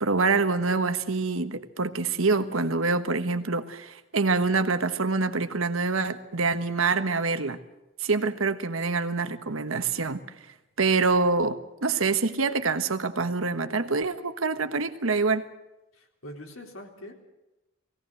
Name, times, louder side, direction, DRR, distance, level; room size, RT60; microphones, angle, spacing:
voice 1, 0.0-7.6 8.0-10.2 10.8-15.4, right 4 dB, 85° right, 9 dB, 1.3 m, -26 dB
voice 2, 15.9-17.1, left 1 dB, 85° left, 1 dB, 3.8 m, -43 dB
20.5 x 17.0 x 7.8 m, 0.97 s
head